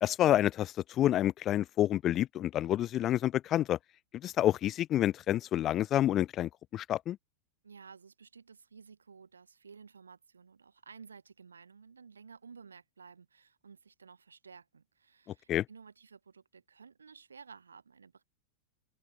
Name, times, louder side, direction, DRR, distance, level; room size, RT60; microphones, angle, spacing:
voice 1, 0.0-3.8 4.1-7.2 15.5-15.6, left 12 dB, 30° left, 0.5 m, -28 dB
voice 2, 7.6-18.2, right 5 dB, 75° right, 5.4 m, -54 dB
open air
figure-of-eight pair, 90°, 0 cm